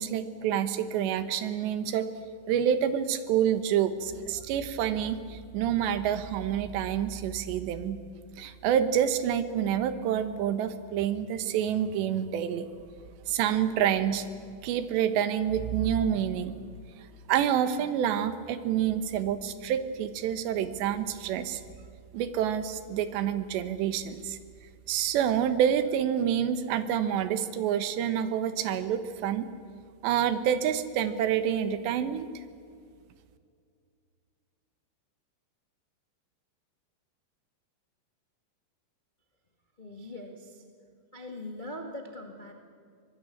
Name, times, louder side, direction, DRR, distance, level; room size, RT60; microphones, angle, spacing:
voice 1, 0.0-2.1 2.5-8.0 8.4-12.7 13.3-14.3 14.6-16.6 17.3-21.6 22.1-24.4 24.9-29.5 30.0-32.3, right 9 dB, 80° right, 11 dB, 3.4 m, -28 dB
voice 2, 39.8-40.6 41.1-42.5, left 1 dB, 45° left, 3 dB, 0.6 m, -41 dB
25.0 x 20.0 x 8.7 m, 2.2 s
omnidirectional pair, 5.0 m